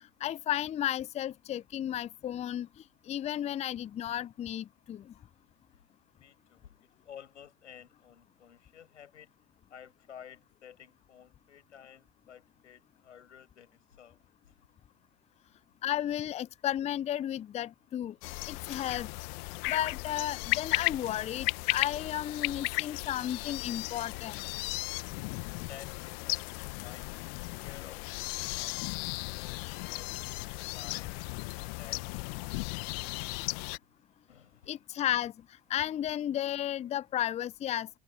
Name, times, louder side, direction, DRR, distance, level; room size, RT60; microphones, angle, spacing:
voice 1, 0.2-2.7 3.1-5.1 15.8-18.2 18.5-19.1 19.7-24.5 34.7-35.3 35.7-37.9, left 11 dB, 20° left, 0.5 m, -33 dB
voice 2, 6.1-9.3 9.7-14.6 25.7-27.1 27.6-28.8 29.2-31.3 31.8-32.8 34.3-34.8, left 9 dB, 75° left, 6.2 m, -53 dB
sound 1, 18.2-33.8, left 31 dB, 55° left, 1.5 m, -35 dB
figure-of-eight pair, 75°, 36 cm